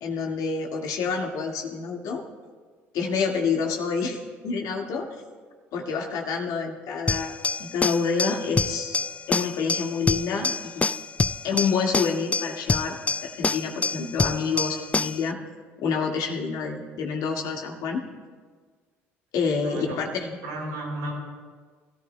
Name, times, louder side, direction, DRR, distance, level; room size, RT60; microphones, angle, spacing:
voice 1, 0.0-2.2 2.9-4.2 4.4-5.1 5.7-7.3 7.6-9.0 9.3-10.9 11.4-15.4 15.8-18.0 19.3-20.4, left 5 dB, 65° left, 1 dB, 1.9 m, -28 dB
sound 1, 7.1-15.3, left 4 dB, 20° left, 0.3 m, -27 dB
voice 2, 19.6-20.0 20.4-21.1, right 2 dB, 80° right, -3 dB, 4.4 m, -33 dB
23.0 x 14.0 x 2.2 m, 1.5 s
hypercardioid pair, 60°, 7 cm